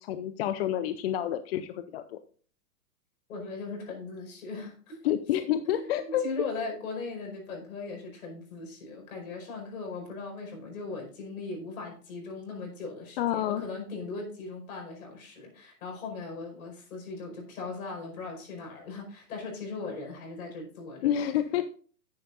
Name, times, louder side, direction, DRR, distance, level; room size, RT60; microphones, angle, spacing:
voice 1, 0.0-2.2 5.0-6.2 13.2-13.6 21.0-21.6, left 11 dB, 40° left, 11 dB, 0.6 m, -29 dB
voice 2, 3.3-5.1 5.6-21.2, left 3 dB, 60° left, 1 dB, 5.0 m, -39 dB
10.0 x 9.6 x 2.6 m, 0.43 s
hypercardioid pair, 115°, 47 cm